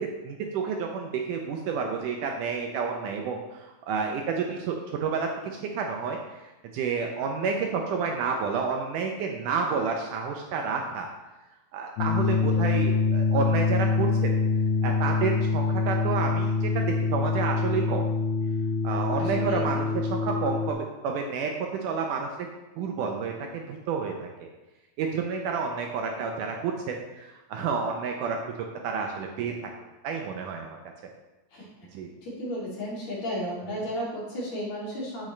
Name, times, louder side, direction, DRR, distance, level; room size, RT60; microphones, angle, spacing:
voice 1, 0.0-6.2 6.7-11.1 11.7-14.4 14.8-18.0 18.8-22.5 22.8-24.5 25.0-28.5 28.8-29.5 30.0-30.8 31.9-32.1, right 5 dB, 75° right, 2 dB, 2.0 m, -30 dB
sound 1, 12.0-20.7, left 4 dB, 70° left, 2.4 m, -25 dB
voice 2, 19.1-19.6 31.5-31.9 32.2-35.3, equal, 50° left, -7 dB, 3.8 m, -34 dB
8.6 x 7.7 x 3.2 m, 1.1 s
omnidirectional pair, 4.0 m